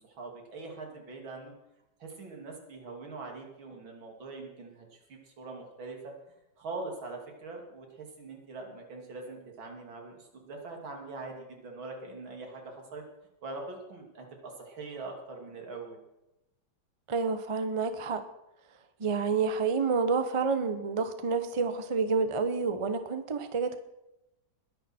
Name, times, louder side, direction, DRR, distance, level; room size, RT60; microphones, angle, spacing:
voice 1, 0.0-1.5 2.0-6.1 6.6-13.0 13.4-16.0, right 3 dB, 85° right, 1 dB, 3.4 m, -43 dB
voice 2, 17.1-18.2 19.0-23.8, right 4 dB, 25° right, 9 dB, 0.6 m, -29 dB
21.0 x 11.0 x 4.4 m, 0.93 s
omnidirectional pair, 2.1 m